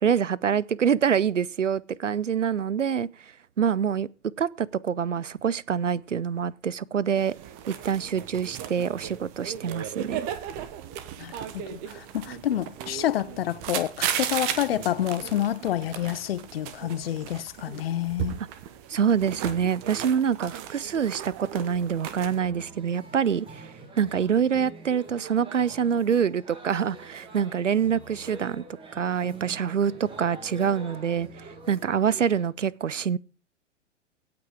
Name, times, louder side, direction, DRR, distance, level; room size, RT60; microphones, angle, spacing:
voice 1, 0.0-3.1 3.6-4.1 4.4-7.3 7.7-10.3 18.9-23.7 24.0-28.6 28.9-33.2, right 7 dB, 85° right, 0.6 m, -26 dB
sound 1, 7.2-22.4, right 10 dB, 30° right, 1.2 m, -36 dB
voice 2, 11.2-18.4, left 12 dB, 55° left, 0.6 m, -28 dB
sound 2, 22.1-32.5, right 3 dB, 15° right, 2.3 m, -45 dB
17.0 x 6.0 x 4.9 m
figure-of-eight pair, 110°, 36 cm